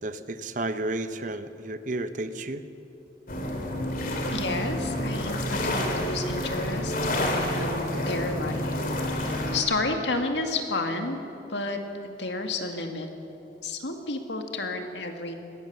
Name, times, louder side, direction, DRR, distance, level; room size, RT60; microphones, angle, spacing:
voice 1, 0.0-2.6, right 2 dB, 45° right, 11 dB, 0.9 m, -32 dB
sound 1, 3.3-9.6, left 1 dB, 50° left, 2.7 m, -29 dB
voice 2, 4.3-8.8 9.2-11.2 11.5-11.8 12.0-13.1 13.6-15.3, left 3 dB, 85° left, 5 dB, 2.0 m, -31 dB
21.5 x 17.5 x 6.9 m, 2.9 s
head